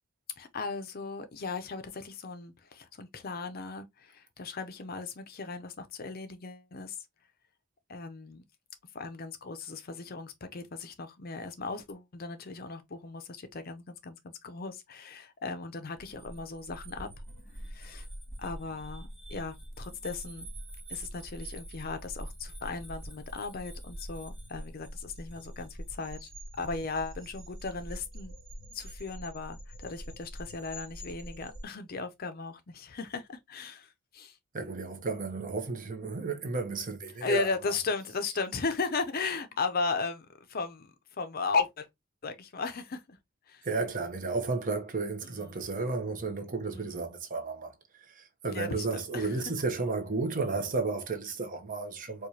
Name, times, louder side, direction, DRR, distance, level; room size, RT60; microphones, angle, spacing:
voice 1, 0.4-7.0 7.9-8.4 8.9-17.1 17.7-18.1 18.4-20.5 20.9-26.3 26.6-28.3 28.7-34.4 37.2-41.9 42.2-43.2 43.5-43.7 45.2-45.6 46.7-47.1 48.5-49.4, left 4 dB, 45° left, 0.5 m, -36 dB
sound 1, 16.0-31.6, equal, ahead, 1.6 m, -44 dB
voice 2, 34.5-37.5 43.6-47.7 48.0-52.3, right 3 dB, 40° right, 0.8 m, -33 dB
4.7 x 2.3 x 2.7 m
head